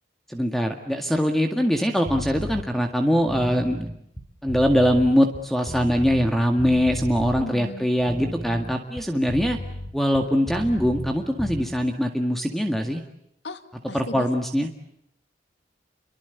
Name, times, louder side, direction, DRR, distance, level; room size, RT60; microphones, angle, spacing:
voice 1, 0.3-3.9 4.4-9.6 9.9-13.0 13.9-14.7, equal, ahead, 5 dB, 1.9 m, -22 dB
sound 1, 2.0-2.6 3.2-6.3 6.6-7.4 8.0-11.1 11.4-11.6, equal, 20° left, 5.6 m, -33 dB
voice 2, 7.2-7.9 13.4-14.3, left 2 dB, 75° left, 10 dB, 2.0 m, -36 dB
30.0 x 24.0 x 8.2 m, 0.76 s
head